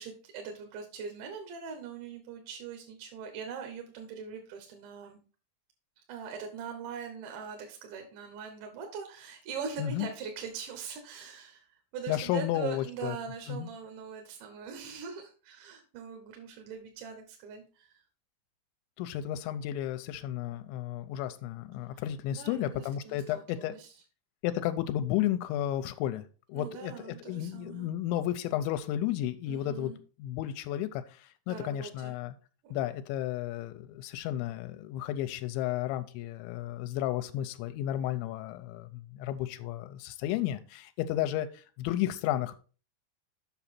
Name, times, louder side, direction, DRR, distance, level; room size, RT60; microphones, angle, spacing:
voice 1, 0.0-5.2 6.1-18.0 22.3-23.9 26.6-27.9 29.5-30.0 31.5-32.1 32.6-32.7, right 6 dB, 75° right, 4 dB, 3.4 m, -42 dB
voice 2, 12.1-13.2 13.5-13.7 19.0-23.8 24.4-29.9 30.2-32.3 32.7-42.6, left 12 dB, 85° left, 9 dB, 2.9 m, -33 dB
8.2 x 6.0 x 4.3 m, 0.37 s
omnidirectional pair, 5.3 m